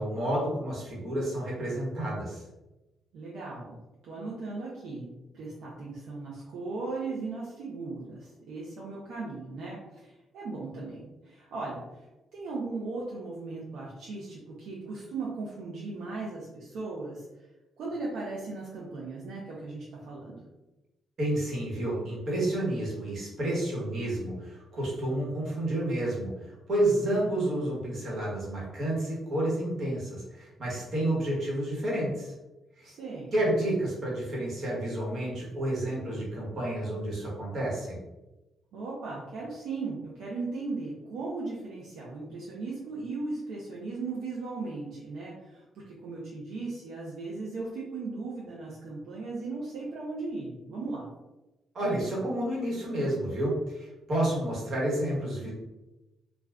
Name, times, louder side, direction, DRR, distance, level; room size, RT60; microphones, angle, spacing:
voice 1, 0.0-2.4 21.2-32.3 32.8-32.9 33.3-38.0 51.7-55.5, right 1 dB, 55° right, -4 dB, 1.3 m, -30 dB
voice 2, 3.1-3.8 4.0-5.1 5.3-11.8 12.3-17.3 17.8-20.4 32.8-33.3 38.7-51.1, right 3 dB, 75° right, -5 dB, 0.6 m, -37 dB
2.4 x 2.3 x 3.3 m, 1.0 s
cardioid pair, 90°, 0 cm